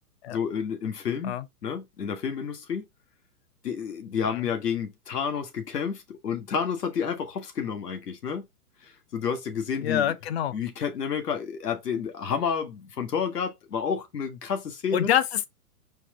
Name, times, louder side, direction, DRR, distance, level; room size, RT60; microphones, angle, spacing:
voice 1, 0.3-1.4 1.6-2.8 3.6-8.5 8.8-10.1 10.5-15.1, left 7 dB, 90° left, 1.6 m, -30 dB
voice 2, 9.8-10.6 14.9-15.5, left 10 dB, 45° left, 0.6 m, -26 dB
4.7 x 3.1 x 3.6 m
hypercardioid pair, 145°, 46 cm